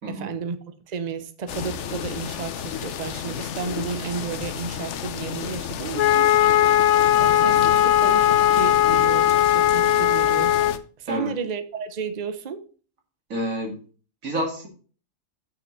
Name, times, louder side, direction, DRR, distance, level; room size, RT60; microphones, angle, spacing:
voice 1, 0.1-0.6 0.9-6.3 6.7-6.9 7.2-10.6 11.0-12.6, right 5 dB, 35° right, 0.8 m, -32 dB
sound 1, 1.5-10.8, left 8 dB, 65° left, 0.9 m, -32 dB
Wind instrument woodwind instrument, 6.0-10.8, left 12 dB, 85° left, 1.1 m, -18 dB
voice 2, 13.3-13.8 14.2-14.7, equal, 75° right, 2.6 m, -28 dB
6.8 x 5.9 x 5.8 m
omnidirectional pair, 1.4 m